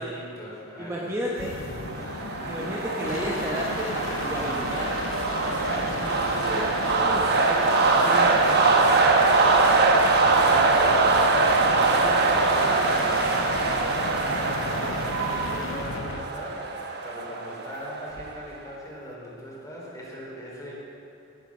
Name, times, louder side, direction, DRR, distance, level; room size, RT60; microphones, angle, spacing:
voice 1, 0.0-2.2 5.4-20.7, equal, 15° left, -5 dB, 4.1 m, -40 dB
voice 2, 0.8-1.5 2.5-4.9 6.4-7.2, equal, 15° right, -4 dB, 1.3 m, -32 dB
sound 1, 1.3-16.3 18.1-18.6, left 3 dB, 70° left, 1.0 m, -34 dB
sound 2, 1.7-18.3, right 3 dB, 50° right, 1.2 m, -23 dB
17.5 x 9.0 x 6.3 m, 3.0 s
head